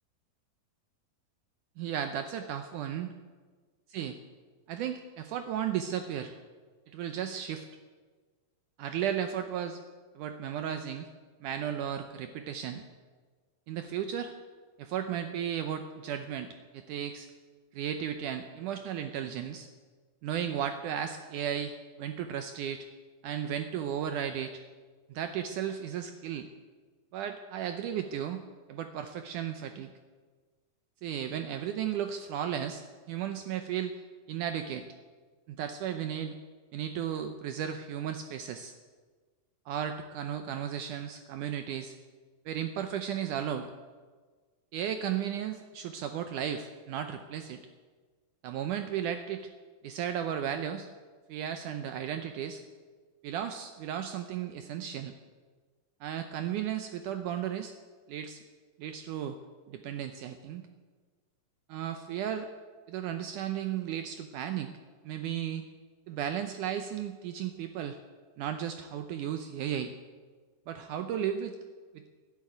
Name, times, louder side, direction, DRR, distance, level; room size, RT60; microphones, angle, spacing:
voice 1, 1.8-3.1 3.9-4.2 4.7-6.4 6.9-7.7 8.8-9.8 10.2-11.1 11.4-12.8 13.7-14.3 14.8-17.3 17.7-19.7 20.2-22.9 23.2-24.6 25.1-26.5 27.1-28.4 28.7-29.9 31.0-33.9 34.3-34.9 35.5-36.4 36.7-38.7 39.7-42.0 42.5-43.7 44.7-47.6 48.4-49.5 49.8-50.9 51.3-52.6 53.2-55.1 56.0-57.7 58.1-58.4 58.8-59.4 59.7-60.6 61.7-62.5 62.9-64.7 65.0-65.7 66.1-68.0 68.4-69.9 70.7-71.6 71.9-72.1, right 9 dB, 75° right, 8 dB, 2.0 m, -34 dB
11.5 x 11.5 x 9.4 m, 1.4 s
omnidirectional pair, 4.2 m